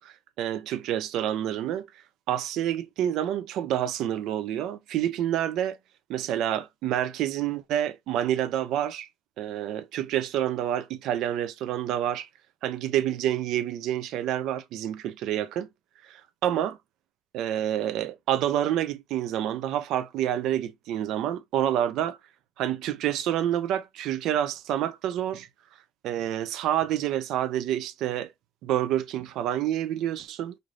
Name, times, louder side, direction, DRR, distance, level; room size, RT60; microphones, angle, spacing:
voice 1, 0.0-1.9 2.3-5.8 6.1-9.1 9.4-12.3 12.6-15.7 16.0-16.8 17.3-22.2 22.6-25.5 26.0-28.3 28.6-30.6, right 11 dB, 55° right, 0.4 m, -28 dB
3.2 x 2.6 x 2.3 m
cardioid pair, 165°, 0 cm